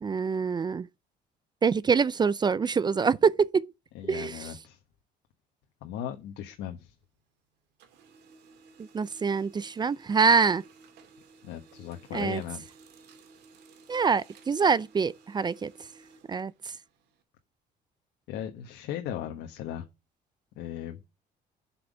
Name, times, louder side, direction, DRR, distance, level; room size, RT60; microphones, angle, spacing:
voice 1, 0.0-0.9 1.6-3.7 4.1-4.5 8.8-10.6 12.1-12.4 13.9-15.7 16.3-16.7, right 5 dB, 25° right, 0.4 m, -25 dB
voice 2, 3.9-4.8 5.8-6.9 11.4-12.6 18.3-19.8 20.6-21.0, left 10 dB, 85° left, 1.4 m, -37 dB
Printer, 6.1-7.4 7.7-17.2, right 4 dB, 80° right, 2.7 m, -56 dB
7.9 x 5.9 x 7.3 m
cardioid pair, 110°, 17 cm